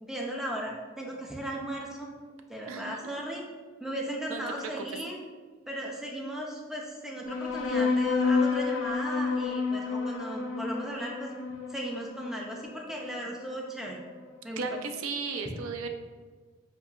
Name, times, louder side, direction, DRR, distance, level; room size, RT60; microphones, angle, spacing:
voice 1, 0.0-2.1 2.5-3.4 3.8-5.2 5.7-11.3 11.7-14.0 14.4-14.6, right 1 dB, ahead, -2 dB, 0.4 m, -36 dB
voice 2, 2.7-3.1 4.3-4.8 14.6-15.9, right 4 dB, 80° right, 6 dB, 0.4 m, -35 dB
sound 1, 7.3-14.2, left 4 dB, 75° left, 0.5 m, -30 dB
4.6 x 2.7 x 2.4 m, 1.4 s
head